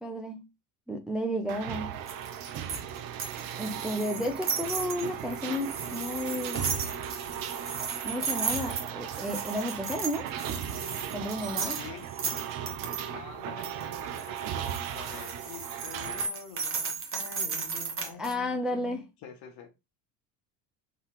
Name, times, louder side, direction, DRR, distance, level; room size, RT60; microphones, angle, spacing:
voice 1, 0.0-0.4 0.9-2.0 3.6-6.6 8.0-10.3 11.1-11.8 18.2-19.0, left 1 dB, ahead, 0.6 m, -32 dB
sound 1, 1.5-16.3, right 9 dB, 45° right, 0.8 m, -37 dB
sound 2, 2.1-13.1 13.6-18.3, right 5 dB, 25° right, 1.2 m, -35 dB
voice 2, 11.8-12.1 12.9-19.7, left 7 dB, 50° left, 1.5 m, -46 dB
3.9 x 3.7 x 3.1 m
hypercardioid pair, 75°, 49 cm